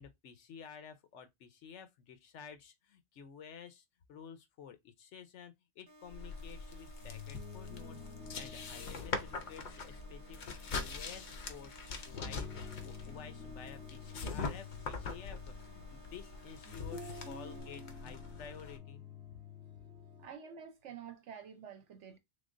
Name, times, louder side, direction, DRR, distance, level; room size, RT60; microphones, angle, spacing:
voice 1, 0.0-8.1 8.4-19.0, left 7 dB, 80° left, 1.0 m, -52 dB
sound 1, 5.9-17.6, equal, 60° right, 1.3 m, -59 dB
sound 2, 6.1-18.8, left 4 dB, 50° left, 0.6 m, -43 dB
sound 3, 7.0-20.2, left 6 dB, ahead, 1.7 m, -50 dB
voice 2, 20.2-22.2, right 7 dB, 75° right, 1.1 m, -49 dB
3.5 x 3.4 x 2.5 m
omnidirectional pair, 1.2 m